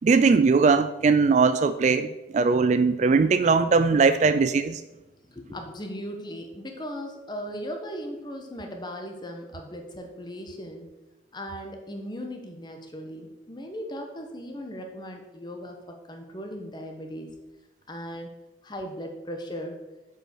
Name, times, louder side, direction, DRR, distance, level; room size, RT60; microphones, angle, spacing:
voice 1, 0.0-4.8, right 4 dB, 40° right, 11 dB, 0.3 m, -20 dB
voice 2, 5.3-10.9 11.3-17.3 17.9-18.3 18.6-19.8, equal, 25° left, 3 dB, 1.1 m, -37 dB
7.6 x 5.5 x 6.1 m, 1.0 s
head